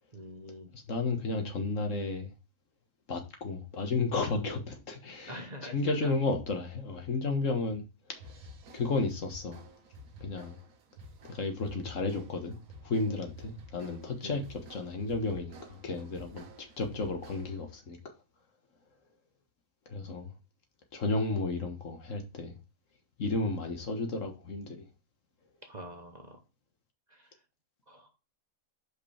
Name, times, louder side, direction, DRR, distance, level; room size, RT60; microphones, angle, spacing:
voice 1, 0.1-0.7 5.3-5.7 6.0-6.1 14.2-14.4 25.6-26.4 27.1-27.4 27.9-28.1, equal, 35° right, 1.1 m, -45 dB
voice 2, 0.7-2.3 3.1-8.2 8.7-9.6 10.2-10.6 11.3-12.6 12.8-14.4 14.7-18.0 19.9-20.3 20.9-22.6 23.2-24.9, left 3 dB, 65° left, 1.7 m, -33 dB
sound 1, 8.2-17.7, equal, 80° right, 1.5 m, -51 dB
5.3 x 5.1 x 5.0 m
omnidirectional pair, 1.5 m